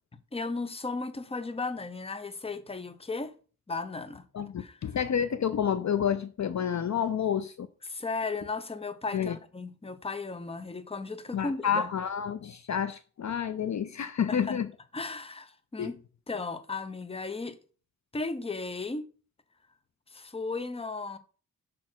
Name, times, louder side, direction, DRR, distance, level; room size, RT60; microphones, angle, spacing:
voice 1, 0.3-3.3 3.7-4.2 4.6-4.8 7.8-11.9 14.3-14.6 14.9-16.0 16.3-17.6 18.1-19.0 20.1-21.2, left 3 dB, 15° left, 0.7 m, -35 dB
voice 2, 4.3-7.7 9.1-9.4 11.3-14.7 15.8-15.9, left 8 dB, 50° left, 0.5 m, -29 dB
6.0 x 4.2 x 6.1 m
wide cardioid pair, 140°, 36 cm